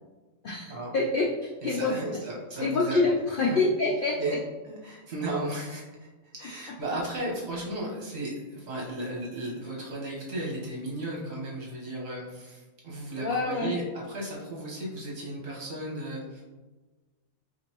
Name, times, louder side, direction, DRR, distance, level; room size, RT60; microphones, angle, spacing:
voice 1, 0.9-1.3 1.6-2.2 2.6-4.4 13.1-13.7, left 3 dB, 90° left, -3 dB, 0.4 m, -26 dB
voice 2, 1.6-3.0 3.4-3.6 4.2-4.4 4.6-16.4, right 1 dB, 50° right, -4 dB, 1.3 m, -35 dB
5.1 x 2.5 x 3.0 m, 1.2 s
omnidirectional pair, 1.5 m